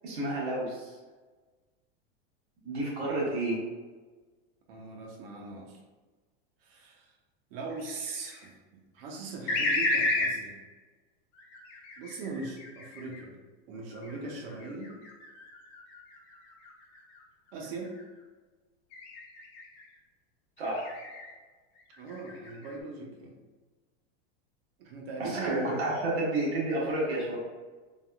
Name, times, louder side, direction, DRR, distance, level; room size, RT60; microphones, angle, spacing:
voice 1, 0.0-0.9 2.6-3.6 20.6-20.9 25.2-27.4, right 2 dB, 90° right, -5 dB, 1.4 m, -30 dB
voice 2, 3.0-3.5 4.7-5.8 6.6-7.1 7.5-10.6 12.0-13.4 13.7-14.9 17.5-17.9 22.0-23.4 24.8-26.1, right 3 dB, 65° right, 0 dB, 0.7 m, -40 dB
sound 1, 7.7-8.5 9.5-10.4 11.3-13.2 13.9-17.2 17.7-18.0 18.9-19.8 20.6-21.3 21.8-22.7, left 2 dB, 55° left, 0.8 m, -33 dB
3.4 x 2.2 x 2.3 m, 1.3 s
supercardioid pair, 145°, 31 cm